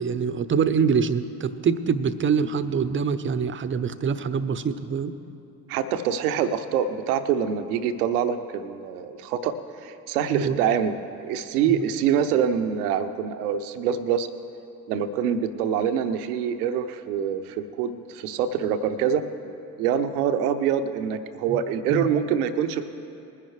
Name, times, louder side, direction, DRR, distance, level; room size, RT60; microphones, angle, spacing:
voice 1, 0.0-5.1 10.3-10.6 11.7-11.8 21.5-21.6 21.9-22.1, right 6 dB, 25° right, 13 dB, 0.7 m, -25 dB
voice 2, 5.7-9.5 9.8-11.0 11.2-14.3 14.9-19.2 19.8-22.8, right 8 dB, 75° right, 10 dB, 0.8 m, -25 dB
20.5 x 10.5 x 3.2 m, 2.7 s
hypercardioid pair, 55°, 45 cm